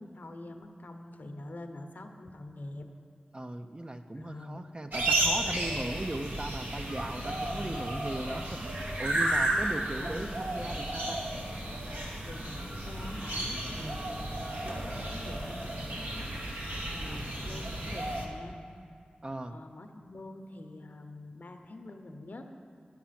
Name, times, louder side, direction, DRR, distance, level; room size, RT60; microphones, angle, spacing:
voice 1, 0.0-2.9 4.2-4.6 7.1-7.9 9.2-10.3 12.2-16.4 16.9-18.6 19.5-22.5, left 2 dB, 65° left, 5 dB, 0.8 m, -45 dB
voice 2, 3.3-11.2 13.7-14.0 17.0-17.3 19.2-19.6, right 1 dB, 30° right, 7 dB, 0.5 m, -38 dB
sound 1, 4.9-18.3, right 1 dB, 75° right, 1.2 m, -33 dB
10.0 x 6.0 x 5.8 m, 2.2 s
cardioid pair, 45°, 3 cm